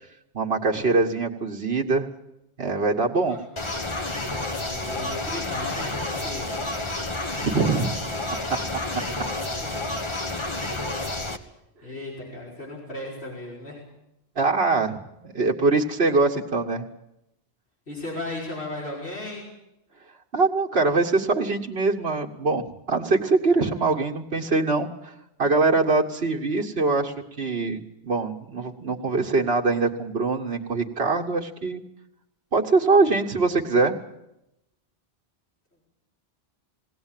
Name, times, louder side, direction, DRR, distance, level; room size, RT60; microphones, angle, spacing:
voice 1, 0.3-2.1 2.6-3.4 7.4-7.9 14.4-16.9 20.3-25.1 25.4-31.8 32.5-33.9, right 3 dB, 65° right, 0 dB, 1.9 m, -23 dB
sound 1, 3.6-11.4, left 2 dB, 25° left, 1.4 m, -30 dB
voice 2, 4.6-6.6 9.6-9.8 11.8-13.8 17.9-19.4, left 2 dB, 75° left, -5 dB, 5.7 m, -35 dB
20.5 x 17.0 x 9.1 m, 0.87 s
omnidirectional pair, 1.1 m